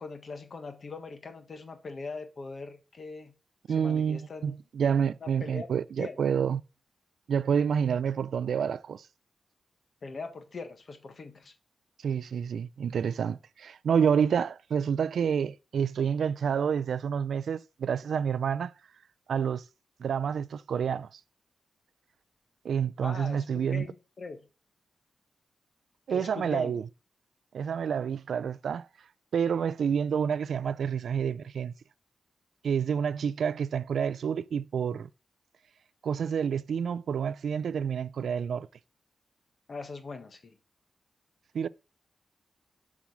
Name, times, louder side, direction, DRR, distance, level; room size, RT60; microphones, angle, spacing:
voice 1, 0.0-3.3 3.7-4.6 5.2-5.7 6.0-6.2 10.0-11.5 23.0-24.5 26.1-26.8 39.7-40.6, left 4 dB, 45° left, 1.5 m, -41 dB
voice 2, 3.7-6.6 7.3-9.1 12.0-18.7 19.3-19.6 20.0-21.1 22.6-23.9 26.1-26.8 27.5-28.9 29.3-31.7 32.6-35.1 36.0-38.7 41.5-41.7, right 7 dB, 85° right, 0.4 m, -28 dB
7.3 x 6.2 x 7.0 m
wide cardioid pair, 160°, 0 cm